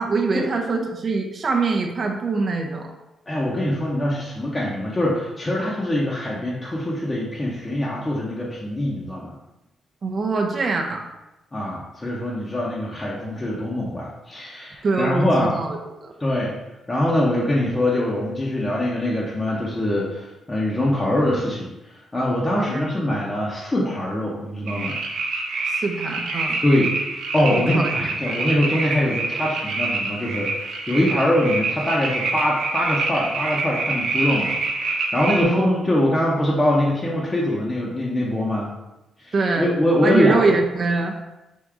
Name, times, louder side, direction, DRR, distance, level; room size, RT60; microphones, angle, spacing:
voice 1, 0.0-2.9 10.0-11.0 14.8-16.1 22.5-22.9 25.8-26.6 27.6-27.9 28.3-28.4 31.1-31.2 35.4-35.8 39.3-39.7 40.0-41.2, right 3 dB, 40° right, 2 dB, 0.5 m, -23 dB
voice 2, 3.3-9.3 11.5-15.6 16.2-16.5 16.9-25.0 25.5-25.8 26.6-26.9 27.3-38.7 39.2-40.4, left 1 dB, 20° left, -5 dB, 0.7 m, -23 dB
sound 1, 24.7-35.4, right 3 dB, 80° right, 0.7 m, -26 dB
3.5 x 2.6 x 4.6 m, 0.97 s
cardioid pair, 110°, 0 cm